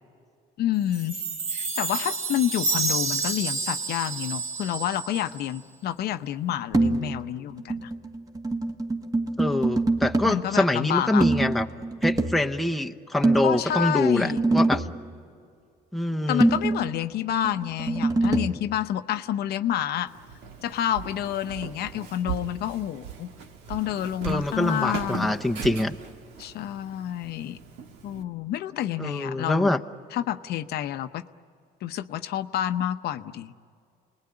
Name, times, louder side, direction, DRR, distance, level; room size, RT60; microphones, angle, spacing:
voice 1, 0.6-7.9 10.3-11.2 13.4-14.4 16.3-20.1 20.6-23.3 23.7-25.3 26.4-27.6 28.0-29.7 30.1-31.2 31.8-33.5, left 11 dB, 70° left, 10 dB, 0.8 m, -29 dB
Chime, 0.9-5.4, right 3 dB, 55° right, 3.2 m, -29 dB
sound 1, 6.7-7.2 7.5-10.4 11.2-12.4 13.2-15.0 16.4-18.6, right 2 dB, 20° right, 1.7 m, -25 dB
voice 2, 9.4-11.7 12.0-14.9 15.9-16.5 24.2-26.0 29.0-29.8, left 1 dB, ahead, 3 dB, 0.9 m, -25 dB
Walk footsteps, 20.1-28.2, right 7 dB, 90° right, 1.8 m, -39 dB
28.5 x 20.5 x 9.8 m, 2.4 s
cardioid pair, 110°, 17 cm